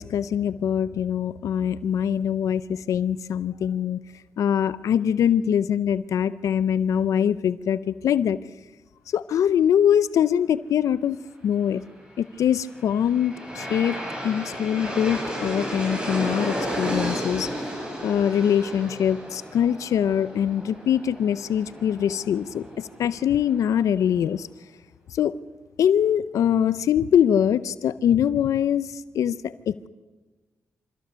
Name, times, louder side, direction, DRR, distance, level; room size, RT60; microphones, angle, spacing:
voice 1, 0.0-4.0 4.4-8.4 9.1-11.2 11.4-11.8 12.2-13.9 14.2-17.5 18.0-24.5 25.1-25.3 25.8-29.9, left 9 dB, 80° left, 16 dB, 0.6 m, -23 dB
Aircraft, 12.5-23.5, equal, 15° right, 7.7 m, -33 dB
26.0 x 15.0 x 6.9 m, 1.2 s
cardioid pair, 60°, 5 cm